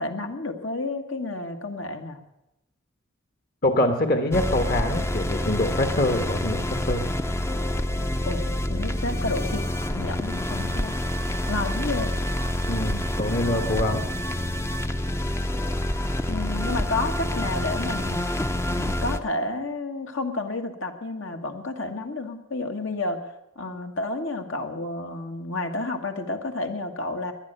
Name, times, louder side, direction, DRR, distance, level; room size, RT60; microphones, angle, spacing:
voice 1, 0.0-2.2 8.2-9.6 9.9-10.9 11.5-12.1 16.3-18.2 18.7-27.3, left 2 dB, 70° left, 4 dB, 1.7 m, -31 dB
voice 2, 3.6-7.1 12.7-14.1, left 1 dB, 45° left, 5 dB, 1.3 m, -25 dB
sound 1, 4.3-19.2, left 1 dB, 15° left, 0.6 m, -27 dB
19.0 x 11.0 x 6.8 m, 0.88 s
head